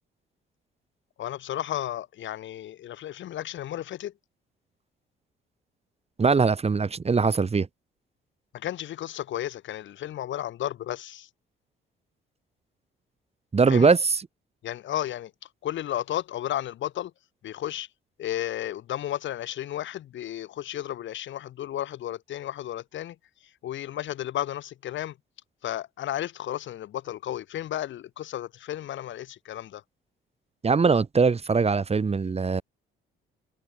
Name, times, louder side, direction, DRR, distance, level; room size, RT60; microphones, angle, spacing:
voice 1, 1.2-4.1 8.5-11.3 13.7-13.9 14.6-15.3 15.6-17.1 17.4-17.9 18.2-23.2 23.6-25.2 25.6-29.8, left 12 dB, 70° left, 4.7 m, -33 dB
voice 2, 6.2-7.7 13.5-14.2 30.6-32.6, right 4 dB, 30° right, 1.9 m, -21 dB
supercardioid pair, 70°, 20 cm